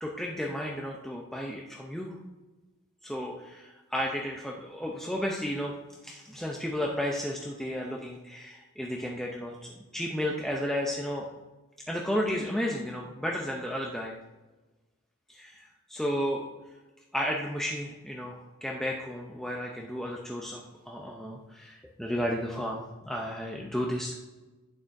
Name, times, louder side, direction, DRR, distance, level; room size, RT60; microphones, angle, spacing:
voice 1, 0.0-2.1 3.0-5.8 6.0-11.2 11.9-14.2 15.3-16.5 17.1-24.1, equal, ahead, -1 dB, 0.6 m, -33 dB
11.0 x 8.8 x 2.6 m, 1.2 s
head